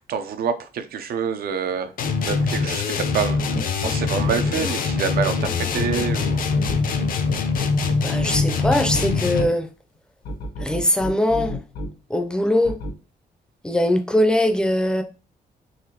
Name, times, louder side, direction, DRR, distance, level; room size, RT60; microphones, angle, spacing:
voice 1, 0.1-1.9 2.2-3.4 3.7-6.4, right 6 dB, 75° right, 0.5 m, -27 dB
sound 1, 2.0-9.6, left 4 dB, 65° left, 0.6 m, -23 dB
sound 2, 3.4-4.7 5.4-9.5 10.2-11.9 12.6-12.9, left 2 dB, 85° left, 1.0 m, -31 dB
voice 2, 8.0-9.7 10.6-11.6 12.1-12.8 13.6-15.0, left 1 dB, 5° left, 0.5 m, -21 dB
4.0 x 2.9 x 2.9 m
wide cardioid pair, 140°, 16 cm